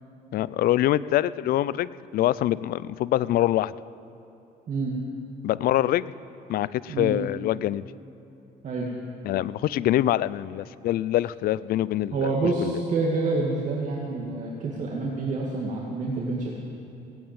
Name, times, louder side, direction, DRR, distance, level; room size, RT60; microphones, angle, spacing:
voice 1, 0.3-3.7 5.4-6.1 6.5-7.9 9.2-12.2 12.6-12.7, left 13 dB, 60° left, 18 dB, 0.4 m, -24 dB
voice 2, 12.1-16.5, right 3 dB, 50° right, -3 dB, 2.1 m, -27 dB
17.5 x 8.9 x 8.8 m, 3.0 s
cardioid pair, 110°, 17 cm